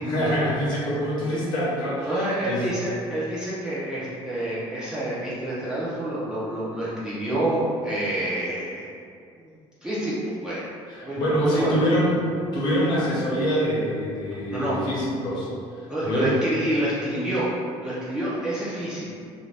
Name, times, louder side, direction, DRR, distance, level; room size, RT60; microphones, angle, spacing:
voice 1, 0.0-2.7 10.9-12.3 12.5-15.5 16.0-16.3, equal, 45° left, -6 dB, 0.8 m, -25 dB
voice 2, 2.0-8.9 9.8-10.1 10.4-10.7 11.0-11.8 14.5-14.8 15.9-17.5 17.8-19.1, right 1 dB, 5° right, -10 dB, 0.4 m, -28 dB
2.5 x 2.2 x 3.2 m, 2.3 s
cardioid pair, 155°, 11 cm